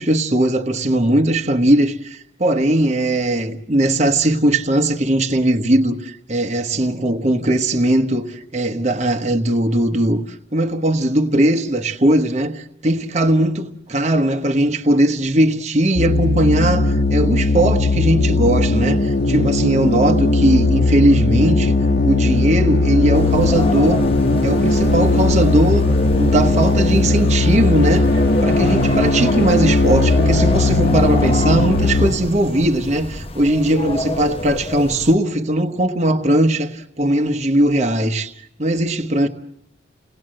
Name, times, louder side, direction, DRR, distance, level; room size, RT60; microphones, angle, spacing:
voice 1, 0.0-10.2 10.5-21.8 22.0-24.0 24.4-25.9 26.2-38.3 38.6-39.3, right 1 dB, 35° right, 1.2 m, -19 dB
sound 1, 16.0-32.1, left 2 dB, 60° left, 1.5 m, -17 dB
sound 2, 23.1-35.1, left 2 dB, 30° left, 0.9 m, -28 dB
29.5 x 19.0 x 7.7 m
head